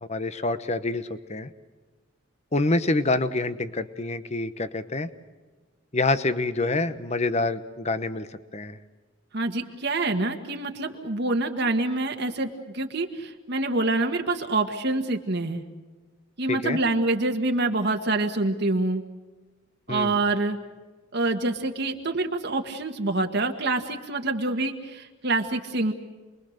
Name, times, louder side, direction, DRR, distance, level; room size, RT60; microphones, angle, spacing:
voice 1, 0.1-1.5 2.5-5.1 5.9-8.3 8.5-8.8 16.5-16.8 19.9-20.1, left 2 dB, 30° left, 12 dB, 1.0 m, -26 dB
voice 2, 9.3-15.6 16.4-19.0 19.9-20.6 21.1-25.9, right 2 dB, 55° right, 4 dB, 1.7 m, -26 dB
28.5 x 22.0 x 6.6 m, 1.3 s
head